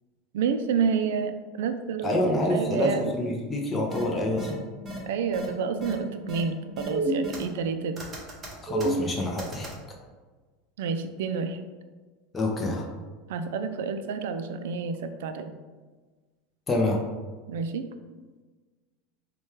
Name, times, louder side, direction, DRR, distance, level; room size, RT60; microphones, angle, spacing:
voice 1, 0.3-1.3 1.6-3.1 5.1-8.1 10.8-11.6 13.3-15.5 17.5-17.9, right 6 dB, 80° right, 8 dB, 0.3 m, -29 dB
voice 2, 2.0-4.6 8.6-9.7 12.3-12.9 16.7-17.0, left 1 dB, 15° left, 0 dB, 0.4 m, -27 dB
sound 1, 3.9-4.0 4.4-4.5 4.9-5.0 5.3-5.5 5.8-5.9 6.3-6.4 6.8-7.7 8.0-9.7, right 2 dB, 20° right, 0.8 m, -31 dB
4.2 x 2.2 x 3.2 m, 1.3 s
supercardioid pair, 155°, 0 cm